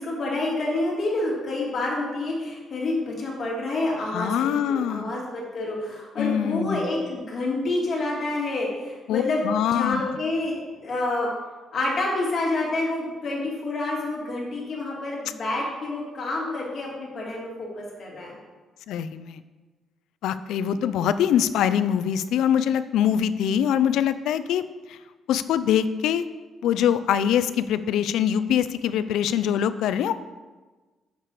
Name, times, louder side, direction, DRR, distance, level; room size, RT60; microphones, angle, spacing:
voice 1, 0.0-11.3 11.7-18.4, left 2 dB, 40° left, -4 dB, 2.7 m, -28 dB
voice 2, 4.1-5.1 6.2-6.9 9.1-10.0 18.9-19.4 20.2-24.6 24.9-25.0 25.3-26.2 26.6-30.1, left 9 dB, 90° left, 13 dB, 0.4 m, -23 dB
8.9 x 6.7 x 4.8 m, 1.3 s
cardioid pair, 160°, 0 cm